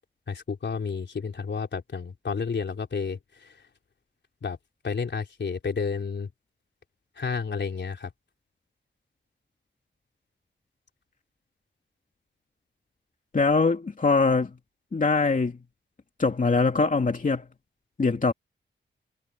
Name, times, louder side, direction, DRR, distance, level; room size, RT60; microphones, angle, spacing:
voice 1, 0.3-3.2 4.4-4.6 4.8-6.3 7.2-8.1, left 5 dB, 65° left, 3.9 m, -31 dB
voice 2, 13.3-14.5 14.9-15.6 16.2-17.4 18.0-18.3, left 4 dB, 40° left, 2.6 m, -22 dB
wide cardioid pair, 80°, 20 cm